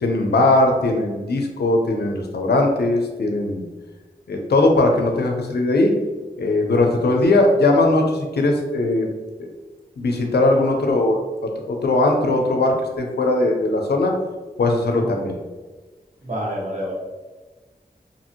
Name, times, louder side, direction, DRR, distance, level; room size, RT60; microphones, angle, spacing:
voice 1, 0.0-3.7 4.3-5.9 6.4-9.1 9.4-9.5 10.0-11.2 11.7-14.1 14.6-15.4, left 2 dB, 85° left, 2 dB, 0.5 m, -19 dB
voice 2, 16.2-16.9, equal, 50° right, -5 dB, 1.1 m, -28 dB
2.8 x 2.6 x 2.7 m, 1.3 s
cardioid pair, 45°, 16 cm